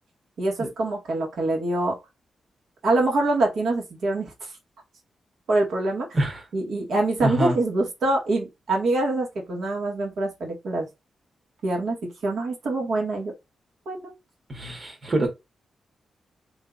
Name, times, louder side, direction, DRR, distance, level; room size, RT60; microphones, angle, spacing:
voice 1, 0.4-2.0 2.8-4.3 5.5-6.1 6.5-10.9 11.6-13.3 13.8-14.1 15.2-15.3, right 2 dB, 80° right, 1.8 m, -25 dB
voice 2, 7.2-7.6 14.5-15.3, right 1 dB, 40° right, 1.6 m, -25 dB
3.5 x 3.3 x 2.5 m
cardioid pair, 75°, 0 cm